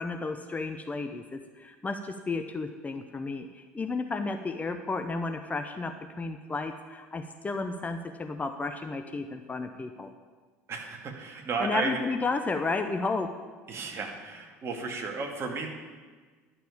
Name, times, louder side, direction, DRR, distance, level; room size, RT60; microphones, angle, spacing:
voice 1, 0.0-10.1 11.6-13.3, left 3 dB, 20° left, 7 dB, 0.8 m, -32 dB
voice 2, 10.7-12.0 13.7-15.7, right 4 dB, 35° right, 2 dB, 2.2 m, -33 dB
11.5 x 7.0 x 8.6 m, 1.4 s
figure-of-eight pair, 70°, 8 cm